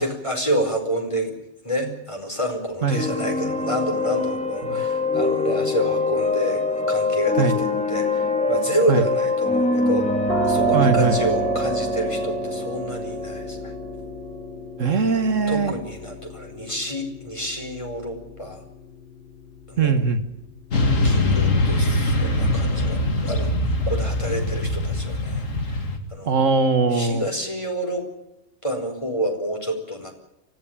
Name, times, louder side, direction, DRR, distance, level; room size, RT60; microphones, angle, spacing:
voice 1, 0.0-1.3 1.6-6.6 6.9-10.1 10.4-13.7 15.5-18.6 19.7-20.0 21.0-23.5 23.9-25.8 26.1-26.3 26.9-28.1 28.6-30.1, equal, 25° left, 3 dB, 4.7 m, -28 dB
sound 1, 2.9-14.5, left 2 dB, 5° left, 2.6 m, -24 dB
sound 2, 10.3-21.8, right 2 dB, 50° left, 4.9 m, -32 dB
voice 2, 10.7-11.2 14.8-15.7 19.8-20.2 26.3-27.2, right 4 dB, 75° right, 9 dB, 1.8 m, -20 dB
Motorcycle / Traffic noise roadway noise, 20.7-26.0, left 1 dB, 80° left, 2.7 m, -22 dB
24.5 x 16.0 x 8.8 m, 0.89 s
omnidirectional pair, 1.3 m